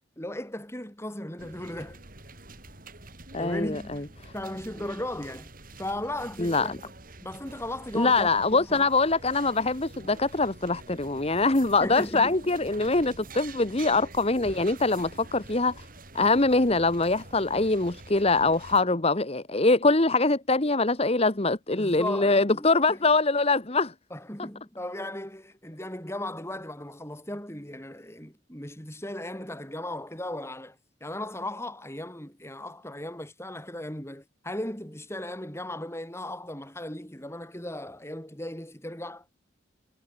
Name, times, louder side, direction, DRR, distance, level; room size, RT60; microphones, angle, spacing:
voice 1, 0.2-2.0 3.4-4.1 4.3-5.5 5.8-6.8 7.2-8.9 11.8-12.5 21.7-23.0 24.1-30.8 31.0-39.2, left 1 dB, 15° left, 7.9 m, -36 dB
sound 1, 1.4-18.8, right 2 dB, 50° right, 7.0 m, -47 dB
voice 2, 3.3-4.0 6.4-6.8 7.9-15.8 16.1-23.9, left 3 dB, 35° left, 1.5 m, -23 dB
head